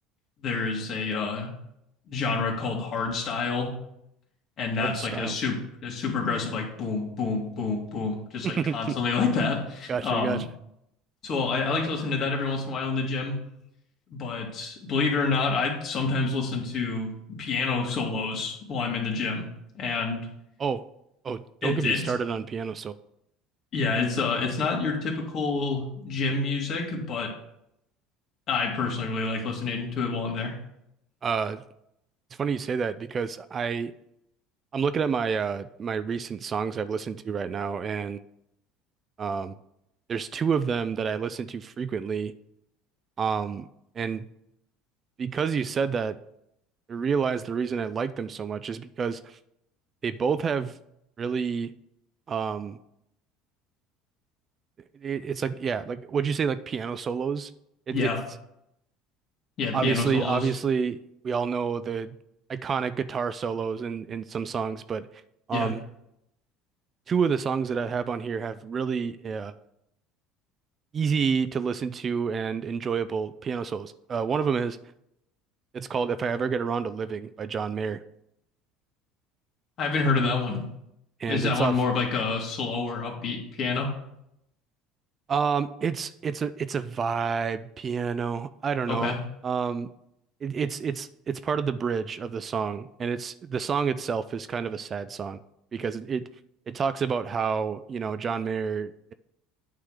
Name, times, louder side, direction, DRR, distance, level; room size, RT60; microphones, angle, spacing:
voice 1, 0.4-1.5 2.1-3.7 4.6-5.6 5.8-10.4 11.2-13.4 14.1-19.5 19.7-20.3 21.6-22.1 23.7-27.3 28.5-30.6 57.9-58.2 59.6-60.5 65.5-65.7 79.8-80.6 81.3-83.9 88.9-89.2, left 4 dB, 45° left, 0 dB, 2.4 m, -28 dB
voice 2, 4.8-5.4 8.4-9.0 9.9-10.5 20.6-20.8 21.2-23.0 31.2-31.6 32.3-33.9 34.7-38.2 39.2-39.6 40.1-42.3 43.2-43.7 44.0-44.3 45.2-46.2 46.9-49.4 50.0-50.8 51.2-51.7 52.3-52.8 55.0-57.5 57.9-58.1 59.7-62.2 62.5-65.1 65.5-65.8 67.1-69.5 70.9-74.8 75.7-78.0 81.2-81.8 85.3-89.2 89.4-89.9 90.4-95.4 95.7-96.3 96.7-99.1, right 6 dB, 35° right, 14 dB, 0.4 m, -29 dB
8.9 x 3.8 x 6.4 m, 0.79 s
supercardioid pair, 100°, 0 cm